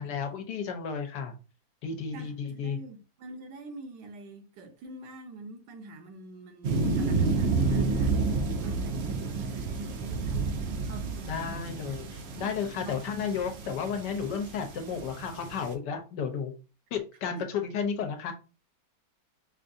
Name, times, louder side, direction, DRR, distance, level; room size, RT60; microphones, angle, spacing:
voice 1, 0.0-1.3 1.8-2.8 11.3-16.5 16.9-18.3, left 6 dB, 80° left, 1.4 m, -33 dB
voice 2, 2.1-12.0 12.4-12.5 12.8-13.0 17.4-17.5, right 2 dB, 80° right, 1.4 m, -46 dB
sound 1, 6.6-15.7, right 4 dB, 65° right, 0.6 m, -30 dB
5.1 x 2.6 x 2.6 m
omnidirectional pair, 1.9 m